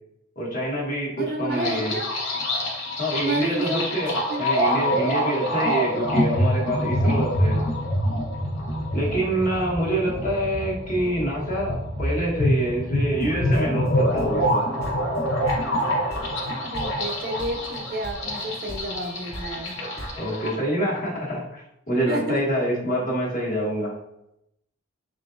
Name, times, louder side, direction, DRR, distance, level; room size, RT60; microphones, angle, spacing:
voice 1, 0.4-2.0 3.0-7.6 8.9-14.7 20.2-24.0, right 1 dB, 40° left, -3 dB, 1.2 m, -26 dB
voice 2, 1.2-2.1 3.2-3.9 4.3-4.5 16.7-19.8 22.1-22.5, right 1 dB, 45° right, 3 dB, 0.5 m, -30 dB
sound 1, 1.5-20.6, equal, 80° left, 1.0 m, -26 dB
sound 2, 13.2-14.6 14.8-15.8 16.1-16.5 16.7-17.1 17.4-17.8 18.0-18.4 18.7-20.2, equal, 10° left, 0.7 m, -38 dB
3.6 x 3.6 x 2.5 m, 0.81 s
head